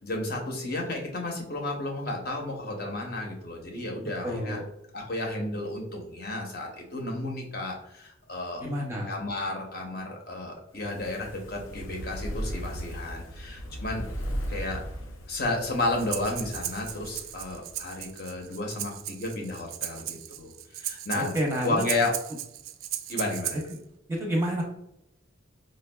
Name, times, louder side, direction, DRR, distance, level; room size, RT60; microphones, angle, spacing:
voice 1, 0.0-4.6 4.9-8.6 9.1-14.0 14.5-14.8 15.3-20.5 20.8-21.4 21.6-22.1 23.1-23.6, left 2 dB, 50° left, 1 dB, 0.7 m, -32 dB
voice 2, 4.2-4.6 8.6-9.1 21.1-21.9 24.1-24.6, equal, 10° right, -1 dB, 0.6 m, -29 dB
Fire, 10.7-18.1 18.4-18.5, equal, 85° left, 0.5 m, -37 dB
Breathing, 16.0-23.8, right 12 dB, 85° right, 0.3 m, -37 dB
5.0 x 2.2 x 2.2 m, 0.80 s
head